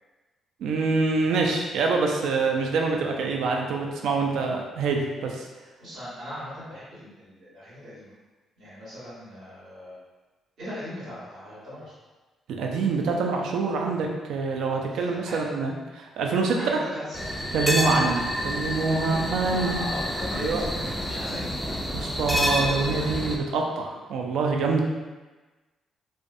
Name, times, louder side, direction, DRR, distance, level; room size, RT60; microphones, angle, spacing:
voice 1, 0.6-5.5 12.5-16.8 17.5-19.9 20.4-20.6 21.9-24.8, right 4 dB, 80° right, 1 dB, 0.3 m, -25 dB
voice 2, 5.8-8.1 8.6-10.0 10.6-11.9 14.9-15.4 16.5-17.4 17.8-18.1 19.0-21.6, equal, 65° right, -10 dB, 1.4 m, -38 dB
sound 1, 17.1-23.4, equal, 5° left, 0.3 m, -28 dB
2.5 x 2.2 x 2.5 m, 1.2 s
cardioid pair, 90°, 0 cm